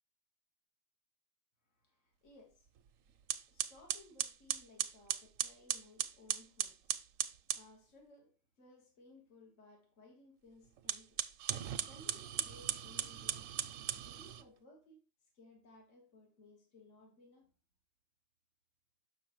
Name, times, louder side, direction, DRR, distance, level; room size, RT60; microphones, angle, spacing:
voice 1, 1.7-2.7 3.5-7.0 7.5-11.2 11.8-13.6 13.9-17.5, left 2 dB, 70° left, 1.7 m, -61 dB
sound 1, 2.8-2.9 3.3-7.7 10.8-14.4, right 10 dB, 90° right, 1.0 m, -38 dB
6.9 x 6.2 x 3.0 m
omnidirectional pair, 1.3 m